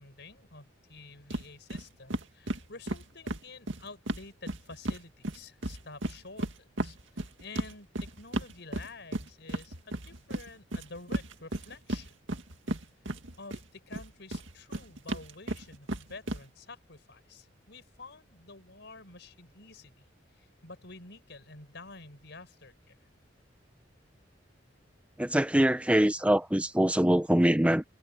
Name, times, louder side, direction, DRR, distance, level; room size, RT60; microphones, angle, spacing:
voice 1, 0.0-12.1 13.4-20.0 20.3-23.0, left 3 dB, 65° left, 6.3 m, -49 dB
sound 1, 1.3-1.4 1.7-1.8 2.1-5.0 5.2-13.6 13.9-16.4, right 1 dB, 85° right, 2.1 m, -34 dB
voice 2, 25.2-27.8, right 1 dB, 5° right, 0.9 m, -24 dB
head